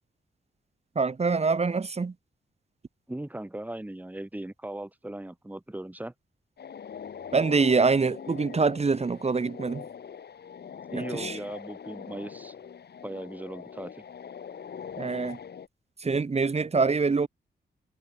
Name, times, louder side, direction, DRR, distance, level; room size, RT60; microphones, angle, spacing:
voice 1, 1.0-2.1 7.3-9.9 11.1-11.4 15.0-15.4 16.0-17.3, right 4 dB, 35° right, 2.0 m, -25 dB
voice 2, 3.1-6.1 10.9-12.5 13.0-14.0, right 1 dB, 10° right, 2.1 m, -38 dB
sound 1, 6.6-15.7, left 7 dB, 60° left, 1.6 m, -42 dB
wide cardioid pair, 135°, 19 cm